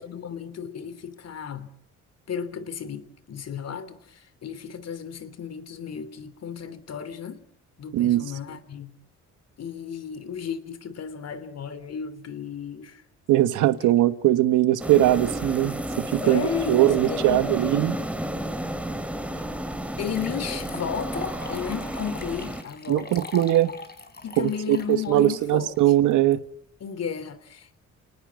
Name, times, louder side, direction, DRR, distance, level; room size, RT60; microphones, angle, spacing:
voice 1, 0.0-1.7 2.3-7.4 7.8-8.9 9.6-13.0 16.2-17.9 20.0-23.2 24.2-25.7 26.8-27.8, left 7 dB, 55° left, 3.1 m, -34 dB
voice 2, 7.9-8.2 13.3-18.0 22.9-23.7 24.4-26.4, right 14 dB, 90° right, 1.4 m, -21 dB
sound 1, 14.8-22.6, right 1 dB, 5° right, 3.1 m, -32 dB
sound 2, 19.4-19.5 20.0-26.3, left 4 dB, 30° left, 5.1 m, -40 dB
29.5 x 19.5 x 7.5 m
cardioid pair, 90°, 30 cm